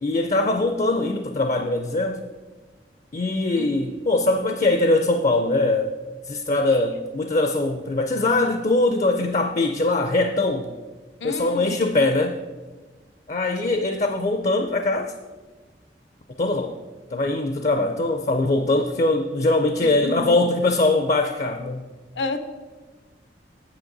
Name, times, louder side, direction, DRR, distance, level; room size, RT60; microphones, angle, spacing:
voice 1, 0.0-2.3 3.1-5.9 6.3-10.7 11.2-12.4 13.3-15.1 16.4-16.7 17.1-21.8, left 2 dB, 40° left, 7 dB, 0.4 m, -22 dB
voice 2, 11.2-11.9 13.6-13.8 19.8-20.4 22.1-22.4, left 3 dB, 90° left, 9 dB, 0.7 m, -31 dB
8.6 x 7.7 x 3.9 m, 1.3 s
head